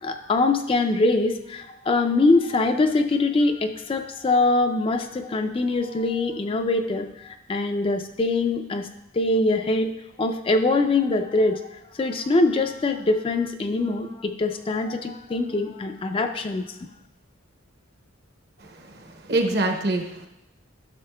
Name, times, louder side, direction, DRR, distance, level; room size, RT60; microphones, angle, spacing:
voice 1, 0.0-8.9 9.1-11.7 11.9-16.8, left 2 dB, 25° left, 6 dB, 0.3 m, -23 dB
voice 2, 18.6-20.3, right 2 dB, 50° right, 3 dB, 0.9 m, -26 dB
11.0 x 6.3 x 2.2 m, 0.88 s
head